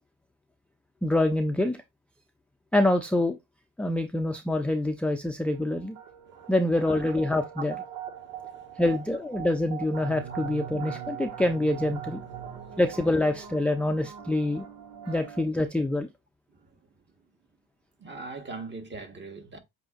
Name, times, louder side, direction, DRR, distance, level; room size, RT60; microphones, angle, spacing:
voice 1, 1.0-1.8 2.7-3.4 3.8-6.0 6.5-7.7 8.8-12.2 12.8-14.6 15.1-16.1, left 1 dB, 5° left, 0.5 m, -26 dB
sound 1, 5.5-15.4, right 9 dB, 80° right, 1.7 m, -41 dB
voice 2, 8.2-8.8 10.3-10.4 12.5-12.8 16.6-16.7 18.0-19.6, right 3 dB, 30° right, 1.4 m, -42 dB
7.7 x 2.8 x 2.5 m
supercardioid pair, 80°, 38 cm